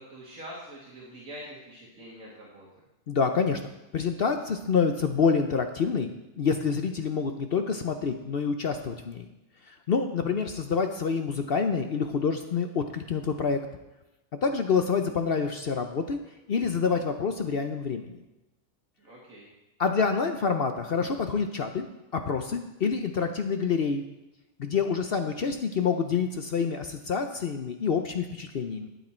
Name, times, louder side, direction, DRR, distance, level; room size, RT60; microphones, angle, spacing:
voice 1, 0.0-2.8 19.0-19.5, equal, 80° right, -4 dB, 2.3 m, -45 dB
voice 2, 3.1-3.6 3.9-6.1 6.4-9.3 9.7-13.6 14.4-16.2 16.5-18.1 19.8-21.8 22.1-24.0 24.6-28.9, left 5 dB, 55° left, 6 dB, 0.8 m, -27 dB
12.5 x 8.5 x 4.4 m, 0.97 s
omnidirectional pair, 1.4 m